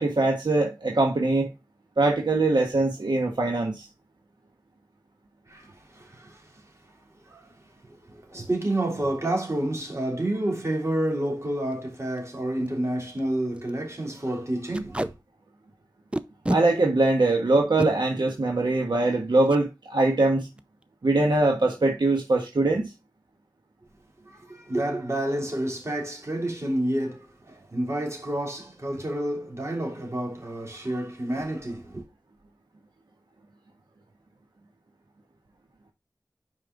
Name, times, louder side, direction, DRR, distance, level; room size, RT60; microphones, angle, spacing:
voice 1, 0.0-1.5 2.0-3.9 16.5-20.5 21.0-22.9, right 2 dB, 90° right, 1.4 m, -22 dB
voice 2, 5.5-6.5 7.3-7.5 7.9-15.1 24.2-32.0, right 1 dB, 40° right, 3.2 m, -29 dB
Packing tape duct tape, 11.1-11.3 11.7-11.8 12.0-12.2 12.7-12.8 13.0-13.2 13.5-13.7 14.7-15.1 16.1-16.6 17.6-17.9 19.5-19.6 20.0-20.2 20.4-20.8, right 1 dB, 15° right, 0.5 m, -29 dB
5.5 x 5.5 x 3.8 m
wide cardioid pair, 60°, 8 cm